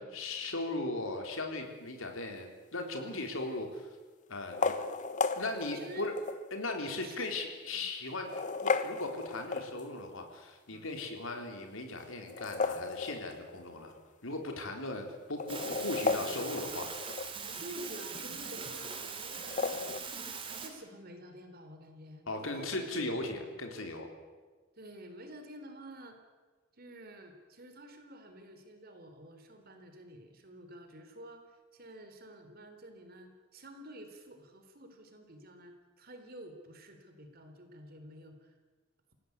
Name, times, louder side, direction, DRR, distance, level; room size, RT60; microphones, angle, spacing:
voice 1, 0.1-3.9 4.3-4.7 5.3-6.1 6.5-8.3 8.6-13.9 14.2-16.9 22.3-24.1, left 2 dB, 80° left, 4 dB, 4.1 m, -38 dB
sound 1, 2.7-3.2 4.4-6.5 7.1-7.2 8.1-10.1 12.2-13.7 14.0-14.1 14.3-14.4 15.2-17.5 19.3-20.0, left 4 dB, 40° left, 1.1 m, -35 dB
voice 2, 5.7-6.1 6.9-7.4 7.7-7.8 10.7-11.0 17.5-19.9 20.4-23.6 24.8-26.2 26.8-38.5, right 1 dB, 50° right, 6 dB, 3.6 m, -50 dB
sound 2, 15.5-20.7, right 5 dB, 25° right, 2.9 m, -41 dB
27.5 x 17.0 x 8.3 m, 1.4 s
head